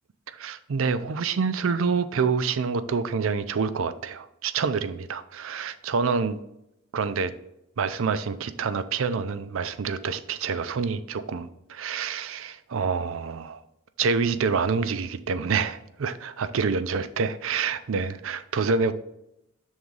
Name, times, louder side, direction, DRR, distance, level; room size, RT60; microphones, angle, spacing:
voice 1, 0.3-6.4 6.9-7.3 7.8-13.6 14.0-18.9, right 5 dB, 70° right, 12 dB, 0.4 m, -27 dB
6.3 x 3.5 x 5.3 m, 0.84 s
head